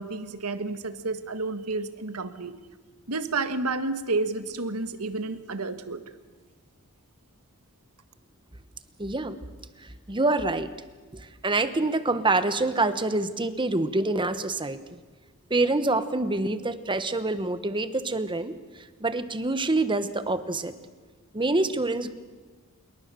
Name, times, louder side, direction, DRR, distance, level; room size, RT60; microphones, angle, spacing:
voice 1, 0.0-2.5 3.1-6.0, right 3 dB, 85° right, 10 dB, 1.6 m, -30 dB
voice 2, 9.0-9.4 9.8-10.7 11.1-15.0 15.5-18.5 19.0-20.7 21.3-22.1, right 2 dB, 20° right, 11 dB, 1.2 m, -26 dB
27.0 x 22.5 x 6.9 m, 1.3 s
head